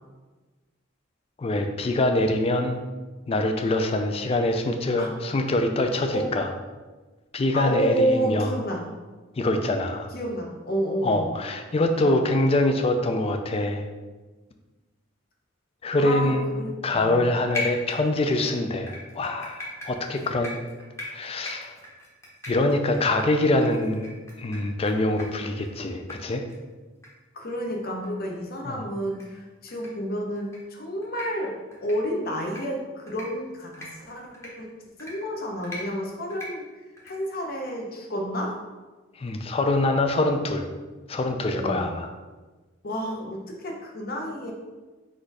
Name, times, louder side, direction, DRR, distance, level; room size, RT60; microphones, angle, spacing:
voice 1, 1.4-2.8 3.3-6.5 7.3-8.6 9.4-10.1 11.0-13.8 15.8-16.5 16.8-20.5 21.1-21.7 22.5-26.4 28.7-28.8 39.2-40.7 41.1-42.1, left 2 dB, 30° left, 6 dB, 0.4 m, -24 dB
voice 2, 7.5-8.8 10.1-11.3 16.0-17.2 27.3-31.5 31.8-34.7 35.0-36.6 37.0-38.5 41.5-41.8 42.8-44.5, equal, 50° left, 1 dB, 0.7 m, -30 dB
sound 1, 17.5-18.4 18.9-24.9 25.2-25.3 25.6-25.7 26.1-26.2 26.5-26.6 27.0-27.1 27.5-27.6 28.0-28.1 29.1-29.2 29.7-29.9 30.4-30.6 31.0-31.3 31.7-32.0 32.4-32.6 33.1-33.3 33.7-33.9 34.3-34.5 35.0-35.1 35.6-35.8 36.3-36.5 37.0-37.1, left 2 dB, 15° left, 0.9 m, -37 dB
4.2 x 2.6 x 4.6 m, 1.3 s
head